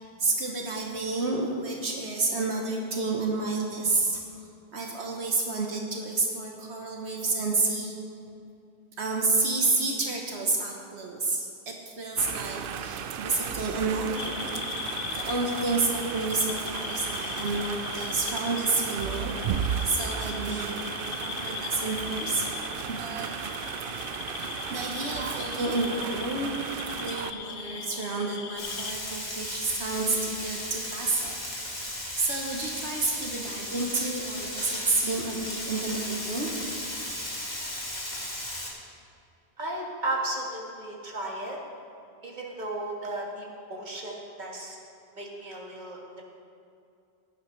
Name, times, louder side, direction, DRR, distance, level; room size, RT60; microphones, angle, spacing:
voice 1, 0.2-4.2 4.7-7.9 9.0-14.6 15.1-20.7 21.2-23.6 24.3-26.5 27.0-31.4 31.7-36.8, right 3 dB, 80° right, 0 dB, 1.4 m, -30 dB
sound 1, 12.2-27.3, right 8 dB, 65° right, 0.7 m, -35 dB
sound 2, 14.1-29.0, left 7 dB, 85° left, 1.0 m, -38 dB
Frying (food), 28.6-38.7, left 1 dB, 40° left, 1.9 m, -35 dB
voice 2, 39.6-41.6 42.2-44.8 45.1-46.2, right 1 dB, 45° right, -2 dB, 1.8 m, -34 dB
17.5 x 10.5 x 3.2 m, 2.6 s
omnidirectional pair, 1.1 m